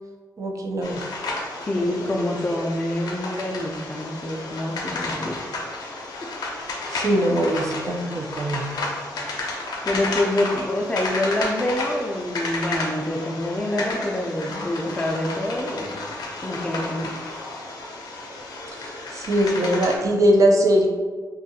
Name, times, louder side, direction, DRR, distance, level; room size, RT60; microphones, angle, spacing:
voice 1, 0.4-1.0 1.8-2.3 6.9-8.6 18.7-20.9, right 1 dB, 55° right, 1 dB, 0.4 m, -22 dB
sound 1, 0.8-20.0, left 2 dB, 75° left, 0.5 m, -32 dB
voice 2, 1.6-5.4 9.8-17.1, left 1 dB, 15° left, 1 dB, 0.4 m, -26 dB
2.6 x 2.4 x 2.6 m, 1.5 s
cardioid pair, 90°, 7 cm